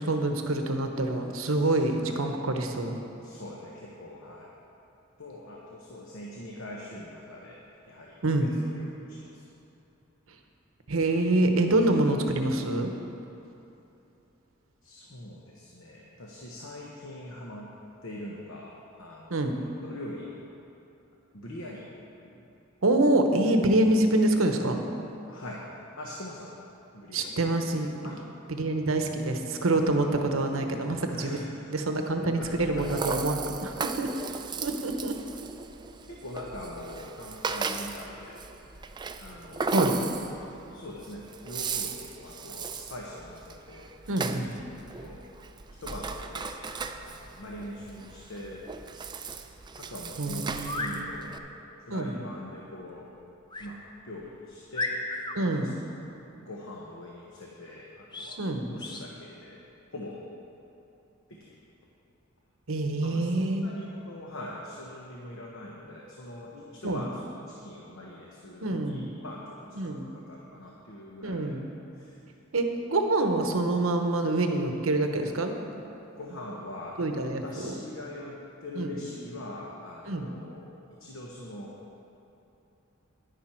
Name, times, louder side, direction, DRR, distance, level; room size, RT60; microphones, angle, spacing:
voice 1, 0.0-3.0 8.2-8.5 10.9-12.9 19.3-19.6 22.8-24.8 27.1-28.1 28.5-31.4 31.7-34.1 34.6-35.2 39.7-40.0 44.1-44.5 50.2-51.1 51.9-52.2 55.3-55.8 58.4-58.7 62.7-63.7 66.8-67.1 68.6-69.1 69.8-70.1 71.2-71.7 72.5-75.9 77.0-77.7 78.7-79.0 80.1-80.3, right 2 dB, 90° right, 5 dB, 1.0 m, -26 dB
voice 2, 3.2-4.5 5.2-9.5 14.8-17.7 18.0-18.7 19.0-20.5 21.3-21.9 22.2-22.5 25.3-25.7 26.0-26.6 26.9-27.3 28.0-28.2 29.7-30.4 31.1-31.7 32.0-33.2 36.0-38.5 39.2-39.8 40.5-44.6 45.0-45.2 45.8-48.7 49.1-49.4 49.8-51.4 51.8-53.1 53.6-53.8 54.0-55.0 55.4-55.9 56.4-58.4 58.7-59.6 59.9-60.2 61.3-61.6 63.0-67.2 67.5-71.6 71.9-72.2 76.2-77.0 77.4-81.7, left 1 dB, 70° left, -3 dB, 1.1 m, -43 dB
Rattle (instrument), 32.4-51.4, right 4 dB, 20° right, 0.4 m, -36 dB
sound 1, 50.5-51.0 53.5-53.7 54.2-54.3 54.7-55.4 58.1-58.4 58.8-59.1, left 2 dB, 20° left, 0.7 m, -34 dB
10.5 x 10.0 x 4.5 m, 2.9 s
head